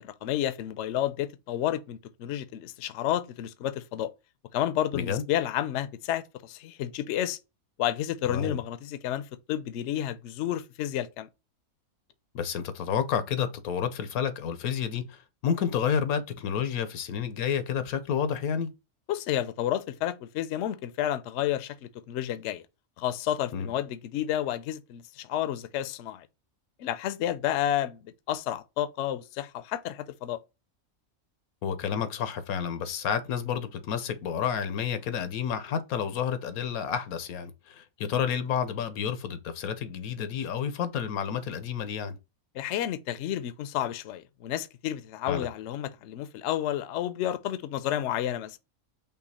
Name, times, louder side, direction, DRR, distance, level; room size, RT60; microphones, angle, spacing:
voice 1, 0.0-4.1 4.5-7.4 7.8-11.3 19.1-22.6 23.0-26.3 26.8-30.4 42.5-48.6, left 11 dB, 65° left, 0.8 m, -31 dB
voice 2, 4.9-5.2 8.3-8.6 12.3-18.7 23.5-23.7 31.6-42.2 45.2-45.5, left 7 dB, 90° left, 1.2 m, -30 dB
5.6 x 2.4 x 4.1 m
omnidirectional pair, 1.5 m